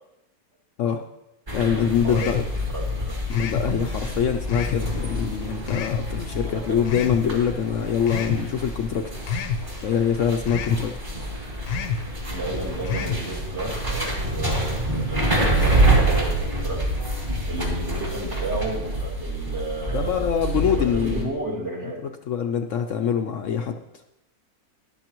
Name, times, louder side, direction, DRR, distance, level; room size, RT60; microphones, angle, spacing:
voice 1, 1.5-2.4 3.3-9.1 9.8-10.9 19.9-21.3 22.3-23.8, left 8 dB, 65° left, 5 dB, 0.9 m, -24 dB
sound 1, 1.5-21.2, right 1 dB, 30° right, 2.7 m, -27 dB
voice 2, 2.0-2.4 2.7-3.1 6.5-6.8 12.3-16.8 17.5-20.4 20.7-22.0, right 2 dB, 45° right, -2 dB, 2.3 m, -33 dB
sound 2, 2.1-2.5 3.3-3.7 4.5-4.9 5.7-6.1 6.8-7.2 8.1-8.4 9.3-9.6 10.5-10.8 11.7-12.0 12.8-13.2, left 6 dB, 80° left, 1.3 m, -27 dB
13.5 x 11.5 x 3.0 m, 0.88 s
omnidirectional pair, 1.6 m